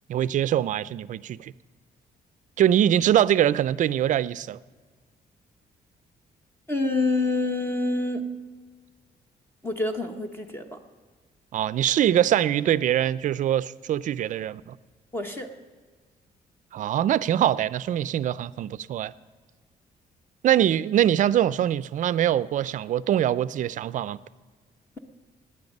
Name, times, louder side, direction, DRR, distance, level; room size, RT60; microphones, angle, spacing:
voice 1, 0.1-1.5 2.6-4.6 11.5-14.8 16.7-19.1 20.4-24.2, right 11 dB, 55° right, 0.4 m, -23 dB
voice 2, 6.7-8.3 9.6-10.6 15.1-15.5, left 2 dB, 15° left, 0.9 m, -26 dB
18.0 x 9.9 x 5.3 m
cardioid pair, 170°, 16 cm